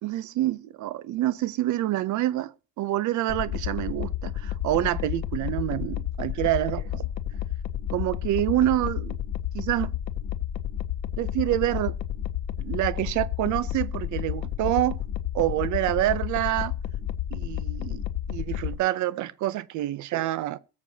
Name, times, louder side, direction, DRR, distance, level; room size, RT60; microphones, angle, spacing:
voice 1, 0.0-7.0 7.9-9.2 9.5-10.0 11.2-12.0 12.6-15.0 15.3-16.7 17.3-20.6, right 14 dB, 50° right, 0.7 m, -27 dB
sound 1, 3.3-18.8, left 11 dB, 45° left, 0.7 m, -31 dB
22.0 x 7.4 x 2.8 m
cardioid pair, 170°, 39 cm